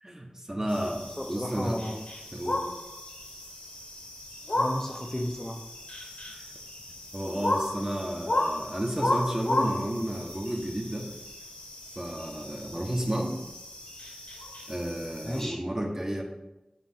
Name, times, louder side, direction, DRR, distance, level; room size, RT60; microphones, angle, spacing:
voice 1, 0.0-1.8 2.3-2.6 7.1-11.1 11.9-13.4 14.7-16.2, right 1 dB, 30° right, 0 dB, 1.4 m, -32 dB
sound 1, 0.7-15.4, left 1 dB, 80° left, 1.7 m, -34 dB
voice 2, 1.2-2.0 4.5-5.6 15.2-15.6, equal, 20° left, 1 dB, 0.8 m, -33 dB
9.0 x 3.4 x 5.8 m, 0.99 s
wide cardioid pair, 50°, 2 cm